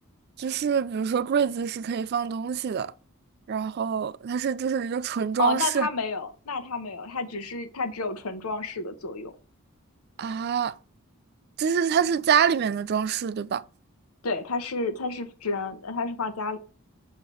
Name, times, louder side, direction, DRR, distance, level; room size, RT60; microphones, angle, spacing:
voice 1, 0.4-2.9 3.5-5.9 10.2-10.7 11.6-13.6, right 7 dB, 45° right, 0.3 m, -25 dB
voice 2, 5.4-9.3 14.2-16.6, left 4 dB, 85° left, 0.9 m, -30 dB
7.2 x 2.9 x 5.4 m
head